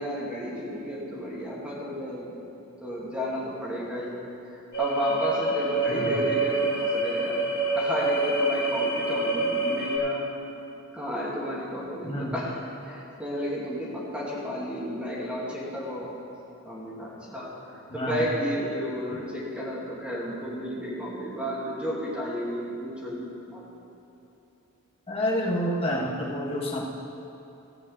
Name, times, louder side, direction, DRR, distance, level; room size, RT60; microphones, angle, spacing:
voice 1, 0.0-2.4 2.8-10.2 10.9-16.1 16.6-23.6, equal, 5° right, -6 dB, 2.4 m, -32 dB
sound 1, 4.7-10.0, right 2 dB, 55° left, 2.4 m, -26 dB
voice 2, 25.1-26.8, equal, 30° left, -4 dB, 1.7 m, -28 dB
15.5 x 5.4 x 8.0 m, 2.9 s
head